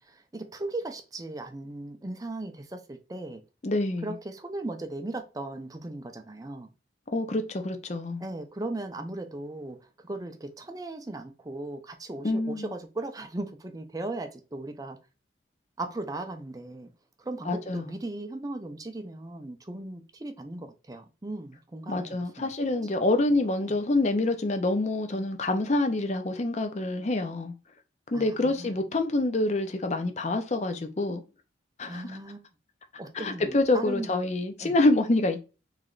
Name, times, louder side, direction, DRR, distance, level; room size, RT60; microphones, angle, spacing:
voice 1, 0.0-3.4 4.0-6.7 8.2-15.0 15.8-16.9 17.2-22.5 23.6-23.7 28.1-28.8 31.9-32.4 33.0-34.1 34.6-34.7, right 2 dB, 20° right, 0.5 m, -37 dB
voice 2, 3.6-4.1 7.1-8.2 12.2-12.7 17.5-17.9 21.9-27.5 28.1-31.2 31.8-32.1 33.1-35.4, left 2 dB, 35° left, 0.5 m, -26 dB
3.2 x 2.9 x 3.8 m
head